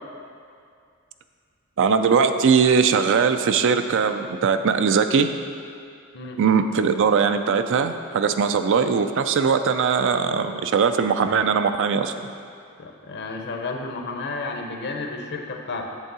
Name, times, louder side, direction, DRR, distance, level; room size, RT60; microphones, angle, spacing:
voice 1, 1.8-5.3 6.4-12.1, right 6 dB, 60° right, 9 dB, 0.4 m, -20 dB
voice 2, 12.8-15.8, left 3 dB, 50° left, 3 dB, 0.7 m, -32 dB
8.2 x 3.7 x 6.7 m, 2.3 s
head